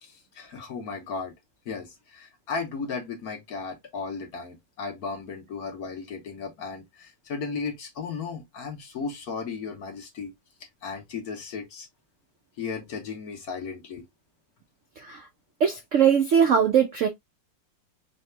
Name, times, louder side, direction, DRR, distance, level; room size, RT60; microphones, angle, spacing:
voice 1, 0.0-1.3 1.6-10.3 10.8-11.9 12.6-14.0, left 5 dB, 55° left, 1.5 m, -35 dB
voice 2, 15.0-15.3 15.6-17.1, right 8 dB, 65° right, 0.8 m, -21 dB
4.7 x 2.9 x 3.2 m
omnidirectional pair, 2.0 m